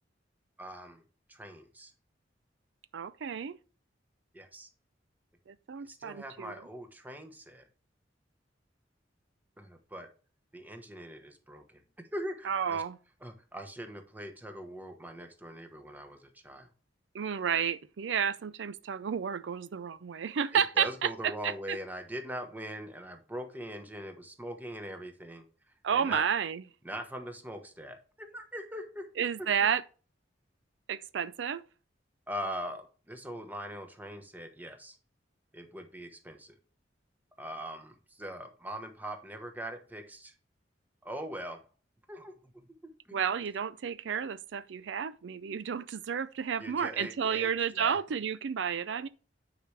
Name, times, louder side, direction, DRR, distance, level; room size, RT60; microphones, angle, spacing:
voice 1, 0.6-1.0 1.3-1.9 4.3-4.7 5.8-7.6 9.6-10.1 10.5-11.8 12.1-12.8 13.2-16.7 20.5-25.5 25.9-26.3 26.8-29.1 29.4-29.5 32.3-35.0 35.5-36.6 37.4-40.3 41.0-41.6 42.1-43.2 46.6-48.2, equal, 10° right, 1.1 m, -42 dB
voice 2, 2.9-3.6 5.5-6.5 12.5-13.0 17.1-21.8 25.8-26.6 29.2-29.8 30.9-31.6 43.1-49.1, right 7 dB, 75° right, 0.4 m, -31 dB
9.1 x 4.9 x 3.3 m
head